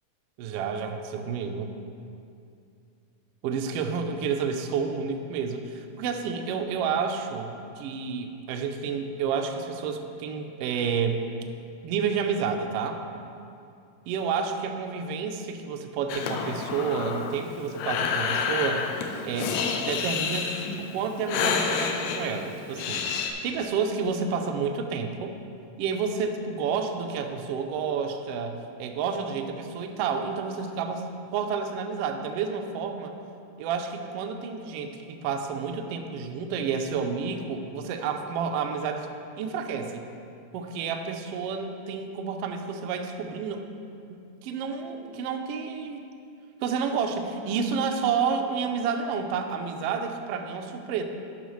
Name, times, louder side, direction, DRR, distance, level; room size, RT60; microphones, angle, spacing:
voice 1, 0.4-1.7 3.4-11.3 11.8-13.0 14.1-18.9 19.2-25.3 25.8-31.1 31.3-33.1 33.6-39.1 39.4-40.0 40.5-43.7 44.1-46.1 46.6-51.0, right 6 dB, 90° right, 5 dB, 1.3 m, -30 dB
Breathing, 16.1-23.3, left 6 dB, 75° left, 1.7 m, -29 dB
12.0 x 5.6 x 3.1 m, 2.5 s
omnidirectional pair, 3.4 m